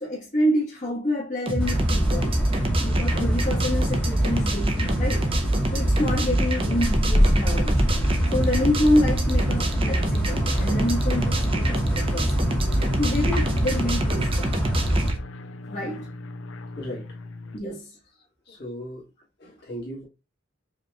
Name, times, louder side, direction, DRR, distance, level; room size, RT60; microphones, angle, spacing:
voice 1, 0.0-2.4 2.8-5.3 5.7-7.8 8.3-12.3 13.0-14.6 15.7-16.1 17.5-18.0, left 1 dB, 40° left, 1.3 m, -27 dB
sound 1, 1.5-15.2, right 1 dB, 30° right, 0.6 m, -26 dB
sound 2, 1.6-15.1, equal, 5° left, 1.1 m, -25 dB
sound 3, 7.7-17.6, left 2 dB, 90° left, 0.5 m, -38 dB
voice 2, 16.8-17.1 18.5-19.0 19.4-20.1, equal, 55° left, 1.8 m, -36 dB
4.9 x 3.1 x 2.2 m
head